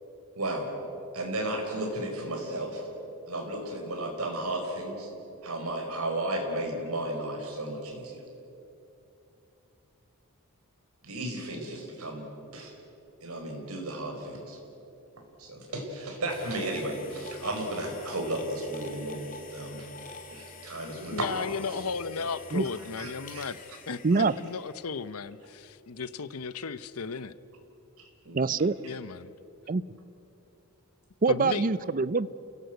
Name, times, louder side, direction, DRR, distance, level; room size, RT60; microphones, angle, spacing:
voice 1, 0.3-0.7 1.1-2.9 3.3-5.1 5.4-8.2 11.0-12.3 12.5-12.7 13.2-14.6 15.4-19.2 19.5-19.8 20.3-21.8 23.0-23.5 24.3-24.4 28.0-28.5, right 1 dB, 80° right, 2 dB, 4.8 m, -34 dB
sound 1, 16.3-25.2, left 4 dB, 40° left, 2.3 m, -47 dB
voice 2, 21.1-23.6 23.9-27.3 28.8-29.3 31.3-31.7, left 5 dB, 80° left, 15 dB, 0.8 m, -35 dB
voice 3, 28.3-28.7 29.7-29.8 31.2-32.3, right 4 dB, 40° right, 18 dB, 0.5 m, -24 dB
29.5 x 17.0 x 8.0 m, 2.9 s
head